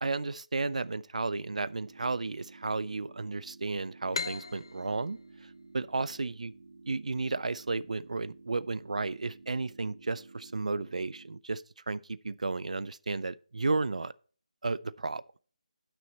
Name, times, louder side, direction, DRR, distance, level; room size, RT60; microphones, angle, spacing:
voice 1, 0.0-6.5 6.9-14.1 14.6-15.2, right 3 dB, 75° right, 0.4 m, -33 dB
sound 1, 1.4-11.4, right 3 dB, 60° right, 0.9 m, -53 dB
sound 2, 4.1-7.5, left 4 dB, 45° left, 0.3 m, -40 dB
9.6 x 6.2 x 4.1 m
figure-of-eight pair, 175°, 4 cm